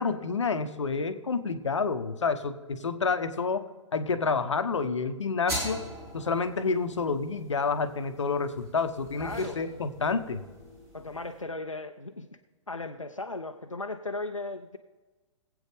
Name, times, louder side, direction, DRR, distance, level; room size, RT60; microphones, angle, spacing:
voice 1, 0.0-3.7 3.9-5.8 6.1-10.4, left 4 dB, 70° left, 10 dB, 0.9 m, -29 dB
sound 1, 5.5-11.4, equal, 20° right, 3.5 m, -41 dB
voice 2, 9.2-9.6 10.9-12.3 12.7-14.8, left 2 dB, 90° left, 4 dB, 0.7 m, -36 dB
21.0 x 8.1 x 3.4 m, 1.2 s
figure-of-eight pair, 120°, 16 cm